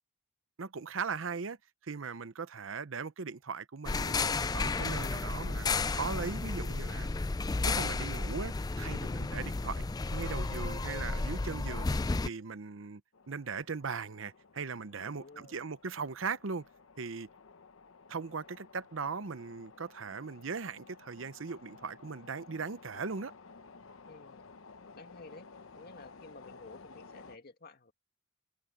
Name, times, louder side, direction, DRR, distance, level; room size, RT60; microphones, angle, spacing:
voice 1, 0.6-1.6 1.8-4.3 4.5-7.1 7.6-9.8 10.1-11.9 12.2-13.0 13.3-16.7 17.0-17.3 18.1-23.3, right 5 dB, 70° right, 0.7 m, -39 dB
sound 1, 3.8-12.3, left 3 dB, 20° left, 0.4 m, -33 dB
sound 2, 13.1-27.4, left 4 dB, 85° left, 0.9 m, -55 dB
voice 2, 15.0-15.6 24.1-24.5 25.0-25.5 25.8-27.9, left 3 dB, 50° left, 2.2 m, -53 dB
open air
head